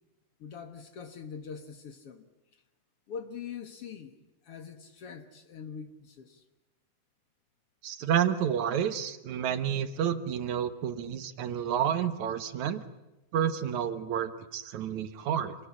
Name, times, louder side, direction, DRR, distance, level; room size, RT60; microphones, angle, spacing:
voice 1, 0.4-2.3 3.1-4.1 4.4-6.4, left 6 dB, 55° left, 2.2 m, -43 dB
voice 2, 7.8-12.8 13.3-15.6, right 9 dB, 70° right, 2.5 m, -30 dB
27.0 x 19.5 x 9.9 m
omnidirectional pair, 3.6 m